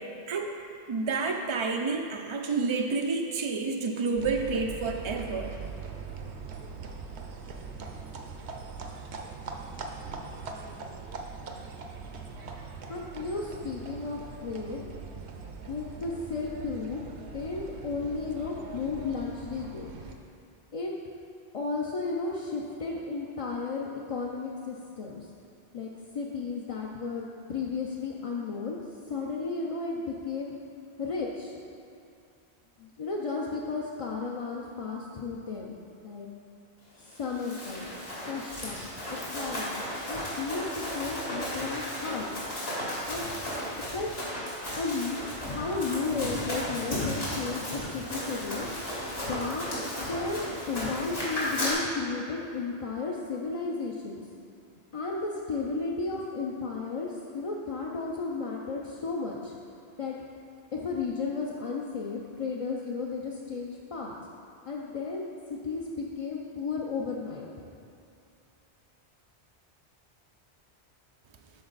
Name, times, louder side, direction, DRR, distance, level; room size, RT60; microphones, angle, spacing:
voice 1, 0.9-5.5, right 4 dB, 55° right, 2 dB, 0.3 m, -29 dB
sound 1, 4.2-20.1, right 4 dB, 75° right, 1.0 m, -41 dB
voice 2, 12.9-14.8 15.7-19.9 20.7-20.9 21.5-25.3 25.7-28.8 29.1-30.6 31.0-31.5 32.8-35.8 36.0-36.3 37.0-37.9 38.3-39.8 40.1-40.7 40.9-42.5 43.1-43.3 43.8-44.1 44.8-45.2 45.4-48.7 49.1-49.7 50.0-54.2 54.9-59.6 60.0-60.2 60.7-64.1 64.6-67.7, left 4 dB, 40° left, -3 dB, 0.5 m, -34 dB
Run, 37.2-51.7, left 1 dB, 65° left, 2.5 m, -34 dB
12.0 x 4.4 x 4.0 m, 2.6 s
omnidirectional pair, 1.1 m